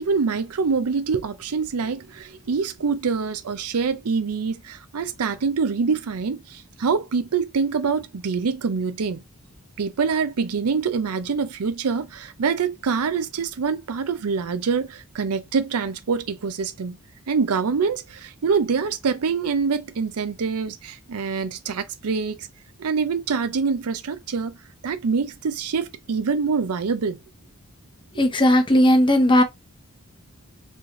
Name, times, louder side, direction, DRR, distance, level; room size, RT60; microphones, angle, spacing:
voice 1, 0.0-9.2 9.8-17.0 17.3-22.5 22.8-24.6 24.8-27.2, right 5 dB, 90° right, 0.5 m, -25 dB
voice 2, 28.2-29.4, left 1 dB, 20° left, 0.8 m, -16 dB
4.2 x 3.2 x 2.5 m
head